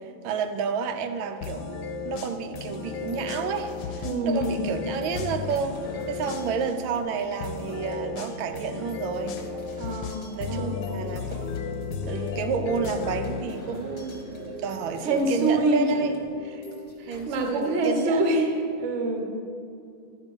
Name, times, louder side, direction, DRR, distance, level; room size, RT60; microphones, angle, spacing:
voice 1, 0.0-1.7 2.0-5.8 6.1-9.4 10.3-11.4 12.1-16.1 17.1-18.3, right 6 dB, 85° right, 7 dB, 1.4 m, -30 dB
sound 1, 0.9-17.5, right 3 dB, 65° right, 1.3 m, -43 dB
sound 2, 1.4-6.8 7.4-13.4, left 6 dB, 80° left, 1.3 m, -34 dB
sound 3, 2.6-18.1, left 2 dB, 25° left, 1.0 m, -47 dB
voice 2, 4.0-4.6 9.8-10.8 15.0-15.9 17.0-18.5 18.8-19.3, right 1 dB, 45° right, 3 dB, 1.0 m, -25 dB
12.0 x 5.2 x 5.3 m, 2.5 s
omnidirectional pair, 2.1 m